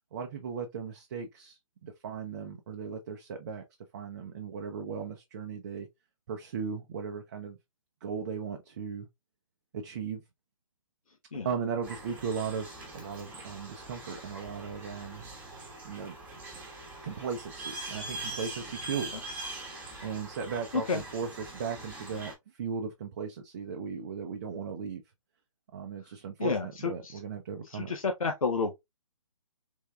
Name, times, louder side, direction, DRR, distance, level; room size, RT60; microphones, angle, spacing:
voice 1, 0.1-3.6 3.9-5.9 6.3-7.6 8.0-9.1 9.7-10.2 11.4-15.2 15.8-16.2 17.0-19.2 20.0-25.0 25.7-27.9, right 6 dB, 35° right, 0.5 m, -37 dB
sound 1, 11.8-22.3, right 2 dB, 10° right, 1.0 m, -43 dB
voice 2, 26.4-27.2 27.6-28.8, left 4 dB, 80° left, 0.7 m, -30 dB
3.5 x 3.2 x 2.2 m
figure-of-eight pair, 145°, 17 cm